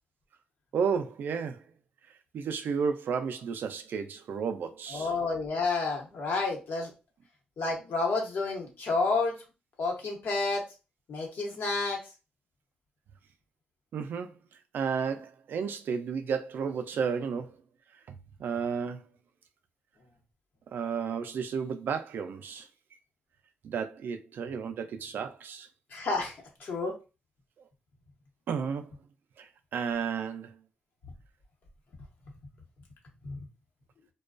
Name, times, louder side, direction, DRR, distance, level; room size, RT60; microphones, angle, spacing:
voice 1, 0.7-1.6 2.3-5.1 13.9-14.3 14.7-17.5 18.1-19.1 20.7-22.7 23.6-25.7 28.5-28.9 29.4-30.6, right 6 dB, 70° right, 0.3 m, -32 dB
voice 2, 4.9-6.9 7.6-9.4 9.8-10.6 11.1-12.0 25.9-26.3 26.6-26.9 33.2-33.4, left 3 dB, 70° left, 0.9 m, -30 dB
2.3 x 2.2 x 2.4 m
cardioid pair, 75°, 4 cm